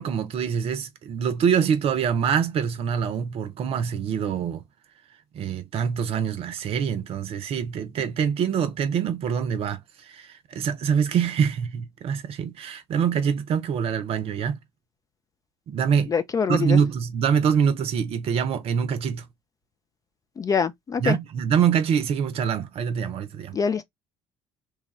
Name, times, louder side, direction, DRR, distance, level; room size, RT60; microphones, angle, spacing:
voice 1, 0.0-4.6 5.3-14.6 15.7-16.1 16.5-19.3 21.0-23.6, right 7 dB, 45° right, 0.6 m, -25 dB
voice 2, 16.1-16.8 20.4-21.2 23.5-23.8, left 6 dB, 25° left, 0.4 m, -24 dB
3.3 x 2.3 x 3.0 m
figure-of-eight pair, 55°, 14 cm